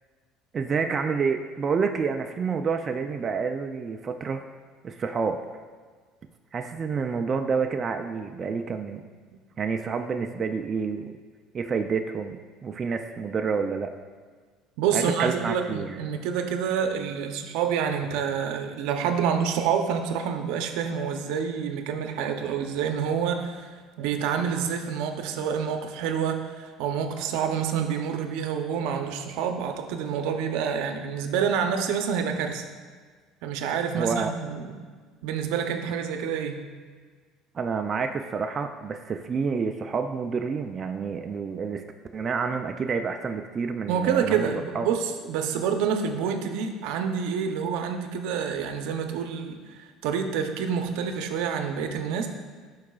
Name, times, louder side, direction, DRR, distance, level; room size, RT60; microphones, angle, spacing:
voice 1, 0.5-4.4 4.8-5.4 6.5-9.0 9.6-11.2 11.5-13.9 14.9-16.0 33.9-34.3 37.5-41.8 42.1-44.9, right 5 dB, 25° right, 5 dB, 0.3 m, -28 dB
voice 2, 14.8-32.6 33.4-34.8 35.2-36.6 43.9-52.3, right 7 dB, 75° right, 6 dB, 0.6 m, -28 dB
12.0 x 4.7 x 2.3 m, 1.5 s
cardioid pair, 145°, 0 cm